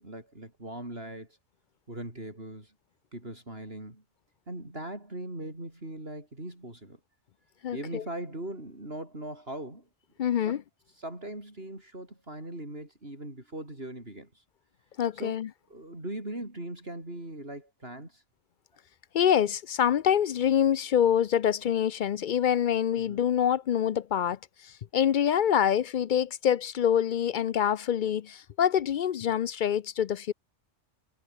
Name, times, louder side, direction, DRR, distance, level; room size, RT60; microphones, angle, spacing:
voice 1, 0.0-1.4 1.9-2.7 3.1-4.0 4.5-7.0 7.7-9.9 10.5-10.6 11.0-14.4 15.1-15.4 15.7-18.2 23.1-23.3, right 1 dB, 50° right, 7.0 m, -40 dB
voice 2, 7.6-8.0 10.2-10.6 15.0-15.5 19.1-30.3, left 9 dB, 60° left, 0.5 m, -26 dB
omnidirectional pair, 1.3 m